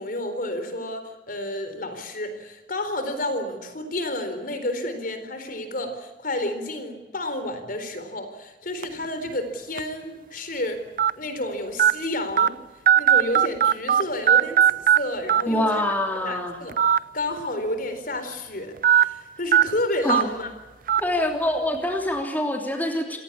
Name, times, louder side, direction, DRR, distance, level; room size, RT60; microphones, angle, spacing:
voice 1, 0.0-10.8 11.2-12.5 13.0-15.8 16.2-16.8 17.1-20.5, left 1 dB, 55° left, 9 dB, 4.1 m, -30 dB
sound 1, 8.8-9.1 9.8-9.9 11.0-11.1 11.8-11.9 12.4-12.5 12.9-14.0 14.3-15.0 15.3-15.4 16.7-17.0 17.4-17.5 18.8-19.0 19.5-19.6 20.1-20.2 20.9-21.0, right 9 dB, 50° right, 0.7 m, -17 dB
voice 2, 15.5-16.6 20.0-20.3 21.0-23.2, left 1 dB, 10° left, 2 dB, 3.2 m, -25 dB
28.0 x 17.5 x 8.7 m, 1.2 s
head